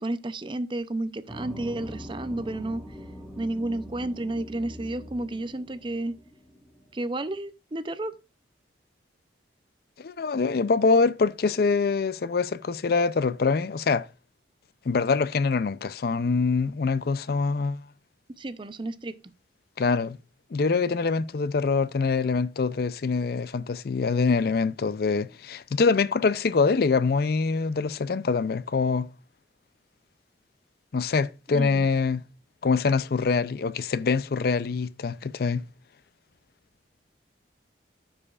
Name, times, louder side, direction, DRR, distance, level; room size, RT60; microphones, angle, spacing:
voice 1, 0.0-2.8 3.4-6.2 6.9-8.1 18.4-19.1 31.5-31.9, right 2 dB, 25° right, 0.5 m, -31 dB
sound 1, 1.3-7.3, equal, ahead, 1.4 m, -43 dB
voice 2, 10.0-14.1 14.9-17.8 19.8-20.2 20.5-29.1 30.9-32.2 32.6-35.6, left 4 dB, 55° left, 0.4 m, -24 dB
14.5 x 5.0 x 2.4 m
head